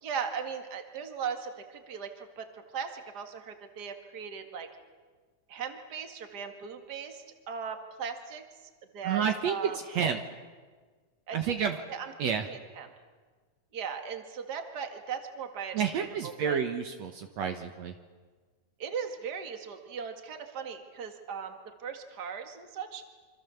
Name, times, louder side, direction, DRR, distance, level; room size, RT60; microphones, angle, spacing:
voice 1, 0.0-4.7 5.5-8.5 8.9-9.8 11.3-12.9 13.7-16.6 18.8-23.0, right 6 dB, 35° right, 6 dB, 2.2 m, -38 dB
voice 2, 9.1-10.2 11.3-11.8 12.2-12.5 15.7-17.9, right 7 dB, 65° right, 5 dB, 2.3 m, -30 dB
27.0 x 25.5 x 7.1 m, 1.5 s
omnidirectional pair, 3.5 m